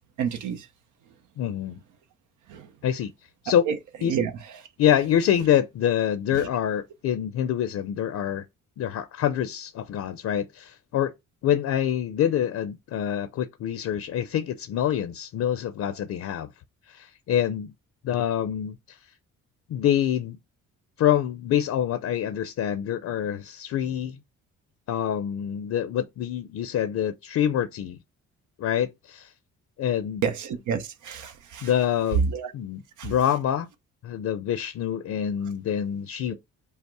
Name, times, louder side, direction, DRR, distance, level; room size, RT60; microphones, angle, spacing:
voice 1, 0.2-0.6 2.5-2.7 3.7-3.8 4.0-4.3 6.3-6.4 30.2-31.7 32.3-32.5 33.0-33.1, right 7 dB, 80° right, 0.9 m, -29 dB
voice 2, 1.4-1.8 2.8-3.1 3.4-3.7 4.0-4.1 4.8-8.4 8.8-11.1 11.4-16.5 16.9-17.7 18.0-19.0 19.7-20.4 21.0-24.2 24.9-28.0 28.6-29.3 29.8-30.2 31.6-33.7 34.0-36.3, left 10 dB, 65° left, 0.6 m, -26 dB
5.5 x 2.1 x 4.6 m
cardioid pair, 90°, 30 cm